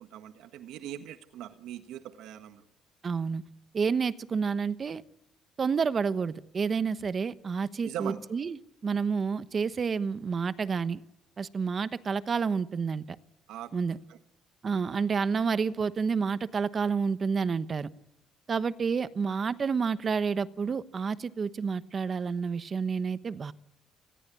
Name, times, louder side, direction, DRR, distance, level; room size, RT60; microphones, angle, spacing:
voice 1, 0.0-2.6 7.8-8.2 13.5-13.7 14.1-14.2, right 11 dB, 85° right, 9 dB, 1.5 m, -40 dB
voice 2, 3.0-3.5 3.7-5.0 5.6-8.6 8.8-11.0 11.4-13.0 13.7-14.0 14.6-17.9 18.5-23.5, right 5 dB, 35° right, 14 dB, 1.1 m, -29 dB
29.0 x 20.5 x 8.5 m, 0.88 s
cardioid pair, 135°, 0 cm